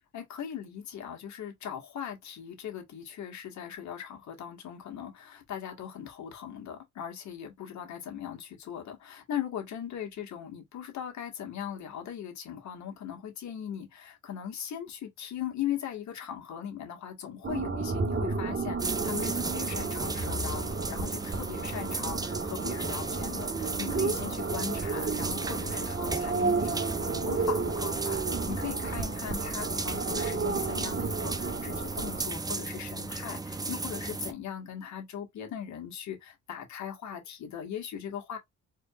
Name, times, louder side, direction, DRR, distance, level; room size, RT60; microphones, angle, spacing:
voice 1, 0.1-38.4, left 9 dB, 65° left, 1.5 m, -39 dB
sound 1, 17.4-32.3, right 4 dB, 40° right, 1.4 m, -32 dB
sound 2, 18.8-34.3, right 3 dB, 15° right, 0.5 m, -35 dB
4.3 x 2.8 x 2.3 m
cardioid pair, 90°, 30 cm